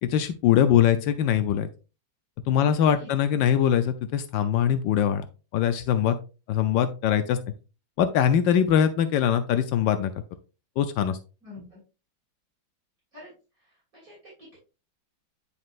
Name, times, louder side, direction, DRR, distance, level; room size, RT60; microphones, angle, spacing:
voice 1, 0.0-1.7 2.5-5.3 5.5-6.2 6.5-7.4 8.0-10.1 10.8-11.2, left 9 dB, 75° left, 9 dB, 1.3 m, -22 dB
voice 2, 2.6-3.1 11.4-11.8 13.1-14.6, left 2 dB, 45° right, -7 dB, 3.5 m, -48 dB
9.5 x 4.2 x 2.5 m, 0.32 s
omnidirectional pair, 2.1 m